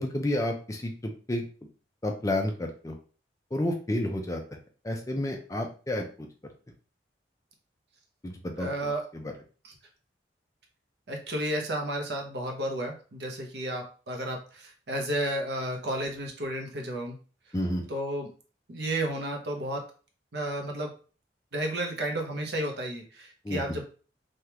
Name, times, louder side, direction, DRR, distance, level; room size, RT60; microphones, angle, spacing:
voice 1, 0.0-1.4 2.0-2.9 3.5-4.4 4.8-6.3 8.2-9.3 17.5-17.8 23.4-23.6, left 1 dB, 20° left, 3 dB, 0.4 m, -30 dB
voice 2, 8.6-9.0 9.6-9.8 11.1-17.2 17.9-18.3 18.7-19.8 20.3-20.9 21.5-23.8, right 1 dB, 65° right, 2 dB, 0.8 m, -32 dB
3.4 x 2.4 x 2.9 m, 0.38 s
head